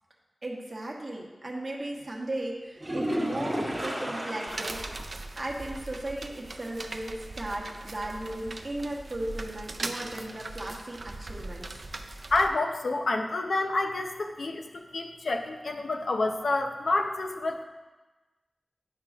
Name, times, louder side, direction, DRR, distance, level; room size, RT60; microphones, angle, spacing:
voice 1, 0.4-4.8 5.4-11.8, right 1 dB, 35° right, -3 dB, 1.0 m, -36 dB
sound 1, 2.8-5.0 5.4-5.5 5.9-6.0 9.8-9.9, equal, 20° right, 1.4 m, -32 dB
sound 2, 4.5-12.5, right 2 dB, 55° right, 0.4 m, -40 dB
voice 2, 12.3-17.6, left 2 dB, 75° left, 4 dB, 0.6 m, -28 dB
9.8 x 5.7 x 2.4 m, 1.2 s
wide cardioid pair, 90°, 0 cm